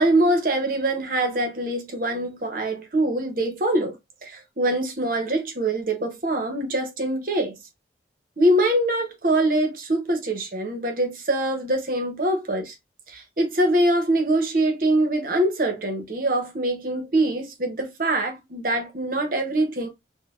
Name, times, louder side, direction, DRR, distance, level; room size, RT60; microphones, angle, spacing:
voice 1, 0.0-7.6 8.4-12.7 13.1-19.9, right 1 dB, 50° right, 0.8 m, -24 dB
3.8 x 2.2 x 2.4 m
head